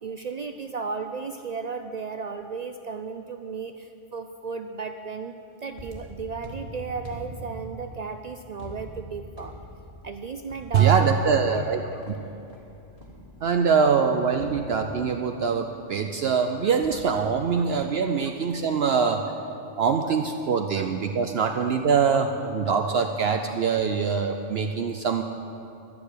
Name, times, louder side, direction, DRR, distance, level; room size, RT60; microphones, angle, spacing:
voice 1, 0.0-9.6 10.0-11.1 11.4-11.7 11.9-12.0 17.5-17.6 20.1-20.2 20.8-20.9, right 5 dB, 75° right, 8 dB, 0.3 m, -35 dB
sound 1, 5.7-13.7 14.4-15.4 16.8-18.1 18.4-18.8, right 1 dB, 30° left, 1.9 m, -44 dB
voice 2, 10.7-11.8 12.1-12.2 13.4-19.2 19.8-25.2, right 6 dB, 60° right, 5 dB, 0.8 m, -23 dB
12.0 x 6.7 x 9.8 m, 2.6 s
omnidirectional pair, 1.3 m